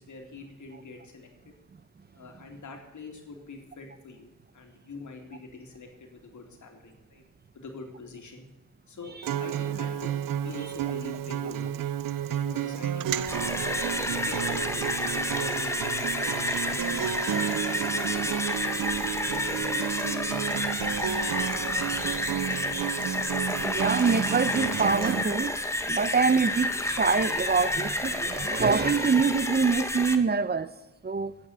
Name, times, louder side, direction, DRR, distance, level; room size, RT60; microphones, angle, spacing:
voice 1, 0.0-1.5 2.1-7.2 7.5-8.5 8.9-11.7 12.3-13.6 13.9-18.5 18.8-22.2, left 3 dB, 60° left, 3 dB, 3.2 m, -45 dB
Acoustic guitar, 9.2-25.2, right 10 dB, 80° right, 0.7 m, -31 dB
sound 1, 13.1-30.1, left 1 dB, 10° left, 1.4 m, -30 dB
voice 2, 23.6-30.7 31.0-31.3, right 5 dB, 30° right, 15 dB, 0.8 m, -25 dB
15.5 x 8.9 x 8.3 m, 0.98 s
cardioid pair, 95°, 33 cm